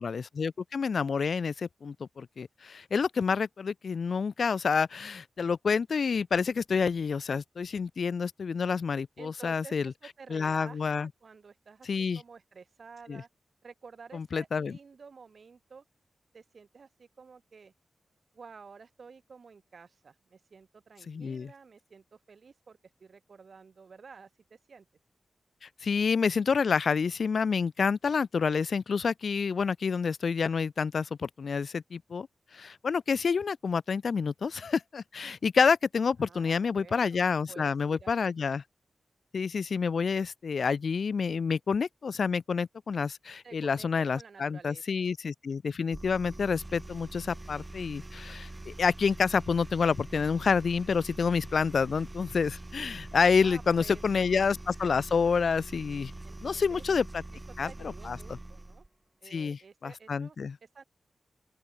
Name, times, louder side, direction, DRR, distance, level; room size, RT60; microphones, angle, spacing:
voice 1, 0.0-9.9 10.3-11.1 11.9-12.2 13.1-13.2 14.1-14.8 21.1-21.5 25.6-32.3 32.5-38.6 39.3-56.1 56.4-57.2 57.6-58.2 59.3-60.6, left 5 dB, 65° left, 0.9 m, -28 dB
voice 2, 9.2-13.3 13.6-15.8 16.3-17.7 18.3-24.9 36.2-37.2 37.5-38.6 43.4-43.9 44.1-44.8 53.4-54.3 56.2-56.8 57.6-58.9 59.2-60.4 60.6-60.8, right 5 dB, 60° right, 3.6 m, -51 dB
sound 1, 45.9-58.9, right 2 dB, 20° right, 2.3 m, -44 dB
open air
wide cardioid pair, 85°, 0 cm